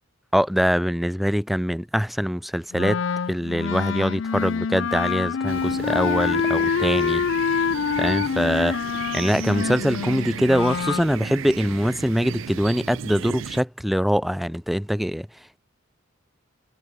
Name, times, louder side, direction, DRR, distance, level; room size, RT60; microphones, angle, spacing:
voice 1, 0.3-3.0 3.3-7.2 8.0-8.8 9.1-15.3, equal, ahead, 0.3 m, -23 dB
Wind instrument woodwind instrument, 2.7-11.0, left 6 dB, 70° left, 0.4 m, -26 dB
sound 1, 5.5-13.6, right 8 dB, 75° right, 0.4 m, -35 dB
head